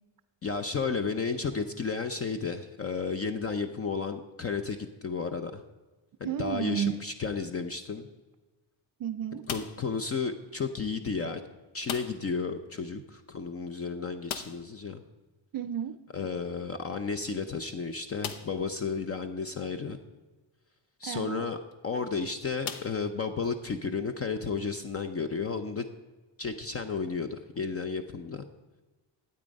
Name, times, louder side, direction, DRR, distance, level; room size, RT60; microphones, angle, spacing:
voice 1, 0.4-5.6 6.2-8.1 9.5-11.4 11.7-15.0 16.1-20.0 21.0-21.6 21.8-25.9 26.4-28.4, left 5 dB, 30° left, 9 dB, 0.6 m, -33 dB
voice 2, 6.2-6.9 9.0-9.5 15.5-16.0 21.0-21.5, right 9 dB, 45° right, 13 dB, 0.5 m, -32 dB
sound 1, 9.4-10.0 11.8-12.4 12.7-12.8 13.1-13.2 14.2-14.8 16.6-16.7 17.3-17.4 18.2-18.7 19.4-19.5 21.5-21.7 22.6-23.5, left 8 dB, 90° left, 1.0 m, -39 dB
12.5 x 8.8 x 5.2 m, 1.2 s
cardioid pair, 145°, 47 cm